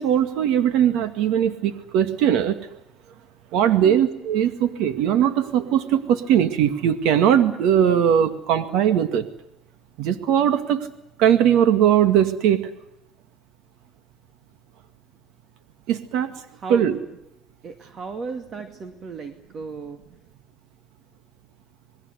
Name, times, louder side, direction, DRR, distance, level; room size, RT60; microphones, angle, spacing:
voice 1, 0.0-2.6 3.5-9.3 10.0-10.9 11.2-12.7 15.9-16.3 16.7-17.0, right 9 dB, 80° right, 10 dB, 2.1 m, -20 dB
voice 2, 16.5-16.9 17.6-20.0, right 5 dB, 40° right, 7 dB, 2.1 m, -35 dB
27.5 x 20.5 x 8.1 m, 0.82 s
cardioid pair, 135°, 0 cm